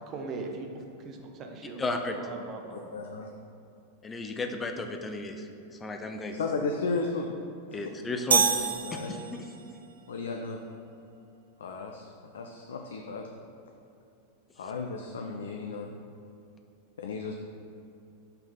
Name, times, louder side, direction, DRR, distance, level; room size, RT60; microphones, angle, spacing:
voice 1, 0.0-1.8 2.1-2.9, right 3 dB, 30° right, 3 dB, 0.7 m, -40 dB
voice 2, 1.8-2.1 4.0-5.4 5.8-6.4 7.7-8.7 9.1-9.4, left 2 dB, 15° left, 4 dB, 0.5 m, -33 dB
voice 3, 2.9-3.3 6.4-7.3 7.7-7.9 8.8-9.2 10.1-10.6 11.6-13.3 14.6-15.9 17.0-17.3, left 4 dB, 65° left, 2 dB, 0.4 m, -34 dB
sound 1, 8.3-9.7, right 6 dB, 70° right, 0.5 m, -26 dB
5.6 x 3.5 x 5.5 m, 2.7 s
figure-of-eight pair, 90°, 0 cm